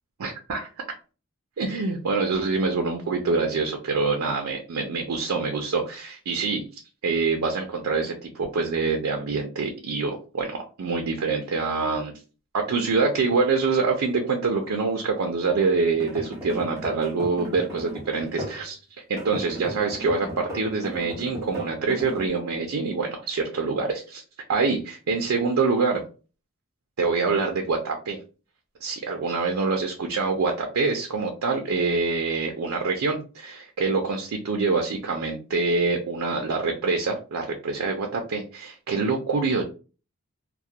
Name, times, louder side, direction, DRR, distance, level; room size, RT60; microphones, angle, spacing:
voice 1, 0.2-0.7 1.6-6.6 7.0-12.1 12.5-18.8 19.1-24.2 24.5-26.0 27.0-28.2 28.8-39.6, right 4 dB, 85° right, 2 dB, 0.4 m, -25 dB
sound 1, 15.9-18.7 19.2-22.3, equal, 15° right, 0.7 m, -36 dB
2.3 x 2.0 x 2.7 m, 0.35 s
head